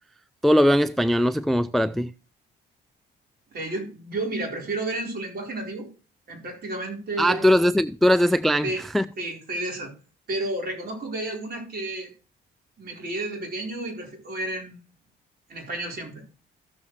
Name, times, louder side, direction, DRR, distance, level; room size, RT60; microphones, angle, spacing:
voice 1, 0.4-2.1 7.2-9.1, equal, ahead, 0.3 m, -20 dB
voice 2, 3.5-5.9 6.3-7.5 8.6-8.8 9.2-9.9 10.3-12.1 12.8-14.7 15.5-16.2, right 2 dB, 50° right, 4.3 m, -31 dB
15.0 x 7.1 x 3.2 m
cardioid pair, 90°, 20 cm